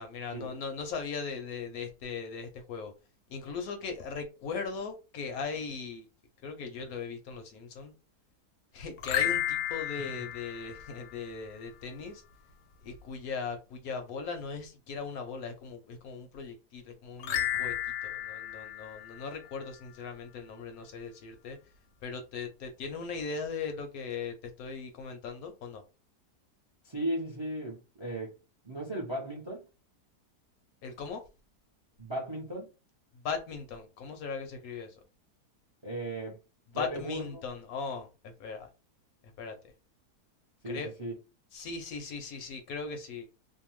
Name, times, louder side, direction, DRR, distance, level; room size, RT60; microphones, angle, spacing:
voice 1, 0.0-2.9 3.3-6.1 6.4-7.9 8.7-12.2 12.8-17.7 18.0-21.6 22.0-25.8 30.8-31.2 33.1-35.0 36.7-38.7 39.4-39.5 40.7-40.9 41.5-43.3, left 5 dB, 70° left, 0.9 m, -39 dB
sound 1, 9.0-11.5 17.2-19.8, left 11 dB, 90° left, 1.2 m, -33 dB
voice 2, 26.8-28.4 28.6-29.7 32.0-32.7 35.8-36.4 36.7-37.2 40.6-41.1, right 1 dB, 35° right, 0.4 m, -36 dB
2.7 x 2.2 x 3.0 m
omnidirectional pair, 1.7 m